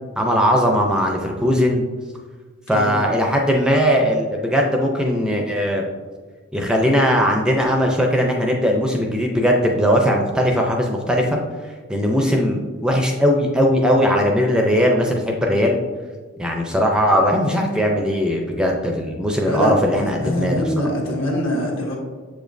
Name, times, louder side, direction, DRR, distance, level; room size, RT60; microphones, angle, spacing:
voice 1, 0.2-1.9 2.7-5.8 6.5-11.4 11.9-15.8 16.4-20.6, equal, 5° right, 1 dB, 0.4 m, -19 dB
voice 2, 2.7-3.0 19.5-22.0, equal, 65° left, 0 dB, 1.4 m, -24 dB
7.2 x 5.0 x 2.6 m, 1.4 s
head